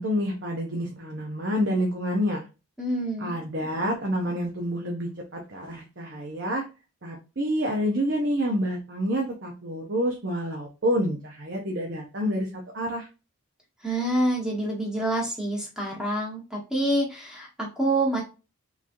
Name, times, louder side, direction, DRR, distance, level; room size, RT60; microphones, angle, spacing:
voice 1, 0.0-2.4 3.2-6.6 7.0-13.1, equal, 50° right, 0 dB, 0.7 m, -28 dB
voice 2, 2.8-3.3 13.8-18.2, right 1 dB, 5° right, -2 dB, 1.1 m, -27 dB
3.7 x 3.0 x 2.6 m, 0.30 s
head